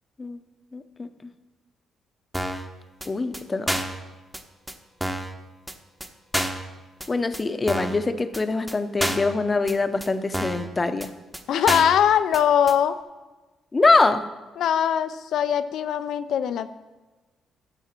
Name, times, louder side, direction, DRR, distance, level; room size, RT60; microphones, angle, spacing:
voice 1, 0.7-1.1 3.1-3.7 7.1-11.1 13.7-14.2, left 3 dB, 25° left, 10 dB, 0.7 m, -23 dB
sound 1, 2.3-2.7 3.0-3.1 3.3-3.4 3.7-4.0 4.3-4.4 4.7-4.8 5.0-5.3 5.7-5.8 6.0-6.1 6.3-6.7 7.0-7.1 7.3-7.4 7.7-8.0 8.3-8.4 8.7-8.8 9.0-9.3 9.7-9.8 10.0-10.1 10.3-10.7 11.0-11.1 11.3-11.4 11.7-12.0 12.3-12.4 12.7-12.8, right 1 dB, 5° right, 0.9 m, -28 dB
voice 2, 11.5-12.9 14.6-16.7, left 9 dB, 75° left, 11 dB, 0.4 m, -21 dB
12.0 x 7.2 x 4.4 m, 1.2 s
cardioid pair, 90°, 0 cm